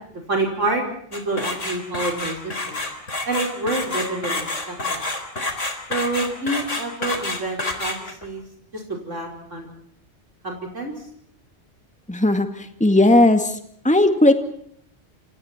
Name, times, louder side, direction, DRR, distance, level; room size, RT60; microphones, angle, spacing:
voice 1, 0.1-0.8 1.1-2.8 3.3-5.0 5.9-8.4 8.7-9.7 10.4-11.1, right 2 dB, 85° right, 1 dB, 5.5 m, -27 dB
sound 1, 1.1-8.3, left 2 dB, 90° left, 4.5 m, -28 dB
voice 2, 12.1-13.6 13.8-14.3, left 1 dB, 5° left, 7 dB, 2.1 m, -16 dB
29.5 x 29.0 x 4.5 m, 0.66 s
omnidirectional pair, 1.2 m